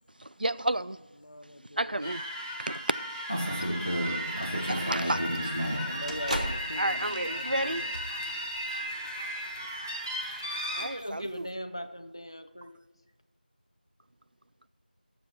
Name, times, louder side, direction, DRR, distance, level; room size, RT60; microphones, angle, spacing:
voice 1, 0.2-1.0 1.8-2.2 2.6-3.0 4.7-5.5 6.8-7.9 10.7-11.5, right 1 dB, 65° right, 0.4 m, -31 dB
voice 2, 1.2-2.1 4.9-5.2 5.8-7.9, left 1 dB, 60° left, 0.8 m, -42 dB
sound 1, 2.0-10.8, equal, 20° right, 1.3 m, -33 dB
sound 2, 4.2-11.5, equal, 45° right, 1.3 m, -42 dB
voice 3, 10.5-12.8, equal, 30° left, 0.6 m, -40 dB
12.5 x 7.4 x 4.7 m
figure-of-eight pair, 180°, 5 cm